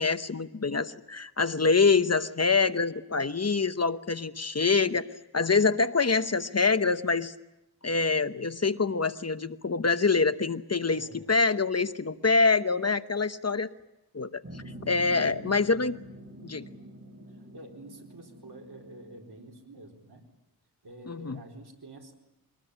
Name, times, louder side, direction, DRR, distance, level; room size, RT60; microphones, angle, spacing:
voice 1, 0.0-5.1 5.3-7.3 7.8-13.7 14.1-16.0 16.4-16.7 21.1-21.4, left 4 dB, 40° left, 11 dB, 0.9 m, -25 dB
voice 2, 10.9-11.3 15.0-15.4 17.3-20.2 20.8-22.1, right 2 dB, 80° right, 1 dB, 4.2 m, -48 dB
sound 1, 14.4-19.5, right 1 dB, 35° right, 4.5 m, -46 dB
24.0 x 19.5 x 10.0 m, 0.92 s
wide cardioid pair, 70°, 38 cm